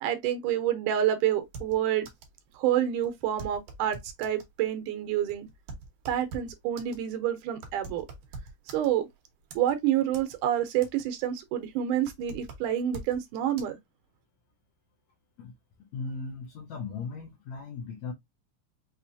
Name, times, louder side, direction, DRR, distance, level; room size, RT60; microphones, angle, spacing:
voice 1, 0.0-2.1 2.6-5.5 6.1-8.1 8.7-9.1 9.6-13.8, right 11 dB, 85° right, 2.4 m, -28 dB
sound 1, 1.4-2.4 2.7-2.8 3.0-4.5 5.1-9.1 9.5-10.4 10.7-11.3 11.6-13.2 13.6-13.7, right 3 dB, 70° right, 2.3 m, -44 dB
voice 2, 15.9-18.1, left 4 dB, 70° left, 2.1 m, -37 dB
5.8 x 3.1 x 2.6 m
omnidirectional pair, 3.5 m